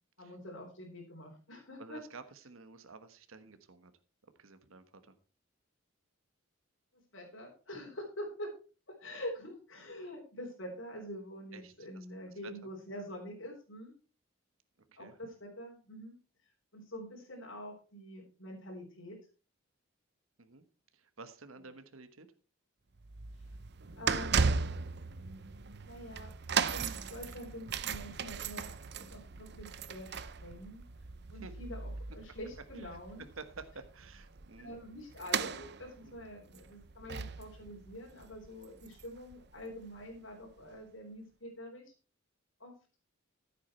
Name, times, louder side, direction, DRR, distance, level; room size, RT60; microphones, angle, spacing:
voice 1, 0.2-2.0 6.9-8.5 9.0-13.9 15.0-16.2 16.4-19.2 23.4-23.6 24.0-24.6 25.8-26.3 26.7-31.0 31.3-33.2 34.6-41.9 42.6-42.7, equal, 65° left, -3 dB, 4.0 m, -46 dB
voice 2, 1.8-3.9 4.2-5.2 11.5-12.3 14.9-15.2 20.4-20.6 20.9-22.3 31.4-31.5 32.7-33.0 33.4-34.8 36.0-36.2, right 4 dB, 85° right, 10 dB, 1.3 m, -51 dB
sound 1, 23.0-39.3 39.6-39.8 40.6-40.7, right 5 dB, 55° right, 0.7 m, -37 dB
15.0 x 8.4 x 4.5 m, 0.35 s
head